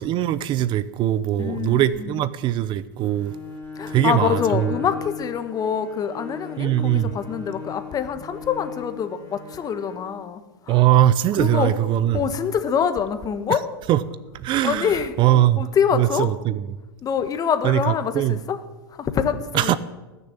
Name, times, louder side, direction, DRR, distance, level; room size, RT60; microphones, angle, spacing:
voice 1, 0.0-3.3 3.9-4.7 6.6-7.1 10.7-12.2 13.9-14.0 14.3-15.6 15.9-16.6 17.6-18.4 19.5-19.8, right 12 dB, 40° right, 17 dB, 0.7 m, -21 dB
voice 2, 1.4-2.2 3.8-10.4 10.7-10.8 11.4-11.7 12.1-13.6 14.6-15.1 15.6-16.3 17.0-18.6 19.0-19.8, left 7 dB, 30° left, 10 dB, 1.5 m, -25 dB
Bowed string instrument, 3.1-10.1, left 6 dB, 15° left, 3.7 m, -36 dB
20.0 x 6.8 x 8.8 m, 1.1 s
hypercardioid pair, 105°, 13 cm